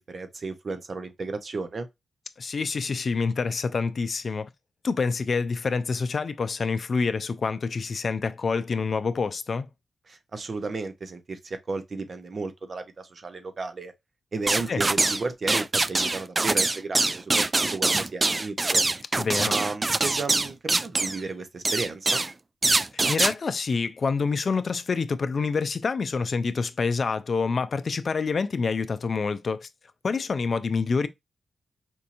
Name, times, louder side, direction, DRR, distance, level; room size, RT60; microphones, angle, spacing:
voice 1, 0.0-1.9 10.1-13.9 14.3-17.4 17.7-18.8 19.4-22.3, right 3 dB, 55° right, 0.7 m, -33 dB
voice 2, 2.4-4.5 4.8-9.7 14.7-14.8 19.2-19.5 22.8-29.7 30.0-31.1, left 4 dB, 55° left, 0.4 m, -27 dB
sound 1, 14.5-15.2 15.5-21.2 21.6-22.3 22.6-23.3, right 3 dB, 30° right, 0.3 m, -24 dB
4.4 x 2.7 x 2.5 m
cardioid pair, 60°, 0 cm